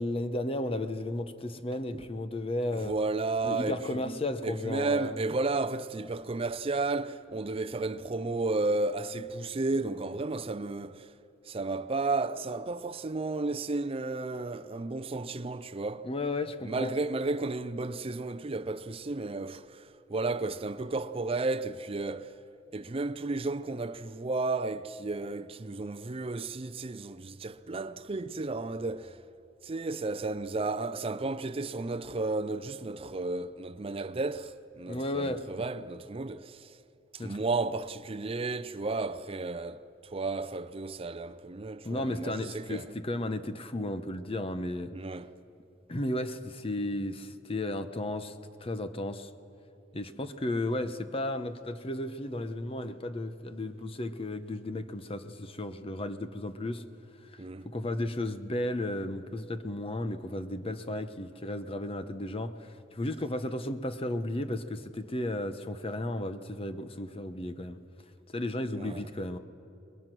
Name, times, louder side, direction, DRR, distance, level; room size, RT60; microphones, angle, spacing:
voice 1, 0.0-2.9 3.4-5.2 16.0-16.9 34.9-35.5 37.2-37.4 41.8-45.0 45.9-49.3 49.9-56.8 57.2-67.8 68.3-69.4, left 1 dB, 30° left, 0.9 m, -34 dB
voice 2, 2.7-11.1 11.5-16.1 16.6-22.3 22.7-29.2 29.6-36.7 37.1-42.8 44.9-45.3 57.4-57.7 68.8-69.1, right 3 dB, 30° right, 0.5 m, -33 dB
30.0 x 21.5 x 6.1 m
head